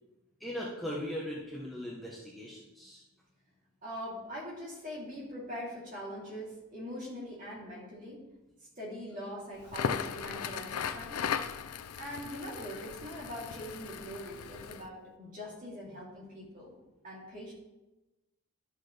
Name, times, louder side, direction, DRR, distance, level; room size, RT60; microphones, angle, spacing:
voice 1, 0.4-3.0, equal, ahead, -6 dB, 1.0 m, -39 dB
voice 2, 3.8-8.2 8.8-11.3 12.0-16.7 17.0-17.5, equal, 35° right, -5 dB, 2.8 m, -42 dB
Crackle, 9.6-14.9, left 7 dB, 80° left, 0.4 m, -37 dB
11.5 x 6.4 x 3.3 m, 1.0 s
head